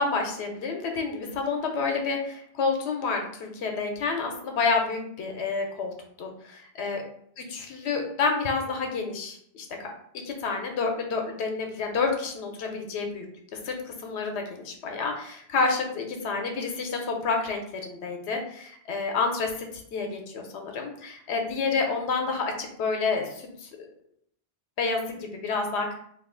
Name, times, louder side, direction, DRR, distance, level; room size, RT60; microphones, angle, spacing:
voice 1, 0.0-5.9 6.2-7.0 7.5-9.9 10.2-13.2 13.6-19.5 19.9-23.7 24.8-25.9, left 4 dB, 85° left, 3 dB, 0.9 m, -29 dB
2.6 x 2.3 x 3.6 m, 0.66 s
omnidirectional pair, 1.1 m